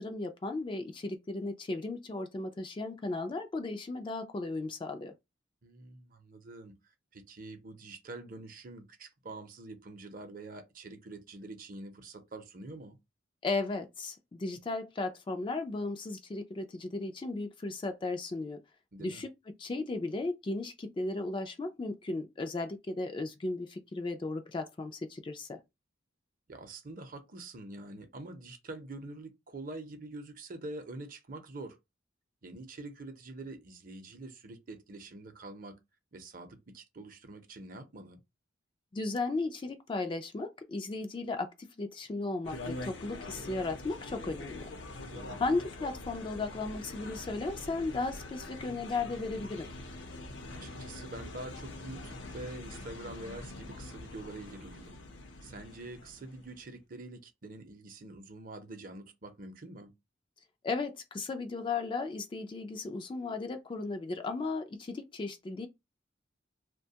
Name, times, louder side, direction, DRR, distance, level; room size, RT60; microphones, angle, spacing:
voice 1, 0.0-5.1 13.4-18.6 19.0-25.6 38.9-44.7 45.4-49.7 60.6-65.7, left 3 dB, 25° left, 0.3 m, -35 dB
voice 2, 5.6-6.7 7.1-13.0 18.9-19.2 26.5-31.8 32.4-35.7 36.1-38.2 45.0-45.4 50.6-55.0 55.4-59.9, right 2 dB, 45° right, 0.6 m, -46 dB
sound 1, 42.4-56.7, left 2 dB, 70° left, 0.6 m, -44 dB
2.7 x 2.2 x 2.7 m
head